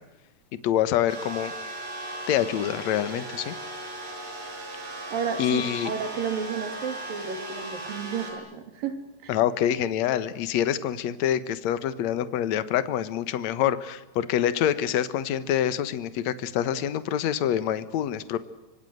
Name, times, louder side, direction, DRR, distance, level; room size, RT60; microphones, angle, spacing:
voice 1, 0.6-1.5 2.3-3.6 5.4-5.9 9.3-18.4, left 10 dB, 60° left, 13 dB, 1.9 m, -26 dB
sound 1, 1.1-8.3, right 2 dB, 40° right, 7.2 m, -37 dB
voice 2, 5.1-9.3, right 6 dB, 60° right, 7 dB, 4.5 m, -32 dB
25.5 x 25.5 x 8.0 m, 0.98 s
omnidirectional pair, 4.6 m